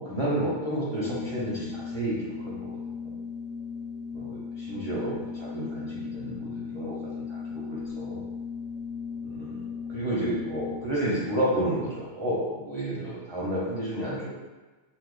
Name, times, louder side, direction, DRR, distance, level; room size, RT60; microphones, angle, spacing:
voice 1, 0.0-2.7 4.1-8.2 9.2-14.3, right 1 dB, 35° right, -9 dB, 0.5 m, -31 dB
Organ, 0.8-11.1, left 6 dB, 80° left, 0.9 m, -37 dB
2.7 x 2.3 x 3.7 m, 1.3 s
omnidirectional pair, 1.2 m